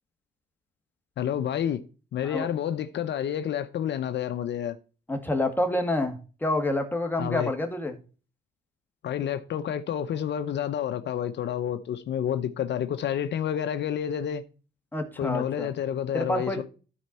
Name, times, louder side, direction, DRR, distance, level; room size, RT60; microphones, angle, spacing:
voice 1, 1.2-1.8 2.1-4.8 7.2-7.5 9.0-14.4 15.2-16.6, left 9 dB, 60° left, 0.7 m, -29 dB
voice 2, 5.1-8.0 14.9-15.7 16.1-16.6, left 1 dB, 10° left, 1.9 m, -28 dB
13.0 x 4.5 x 4.2 m
cardioid pair, 90°, 20 cm